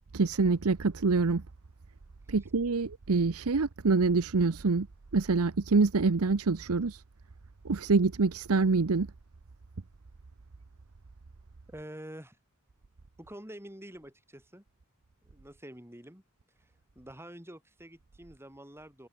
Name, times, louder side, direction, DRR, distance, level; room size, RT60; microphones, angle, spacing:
voice 1, 0.1-1.4 2.3-4.9 5.1-7.0 7.6-9.1, right 4 dB, 75° right, 0.8 m, -26 dB
voice 2, 11.7-12.4 13.2-14.6 15.2-16.2 16.6-16.7 16.9-19.1, right 1 dB, 10° right, 4.6 m, -47 dB
head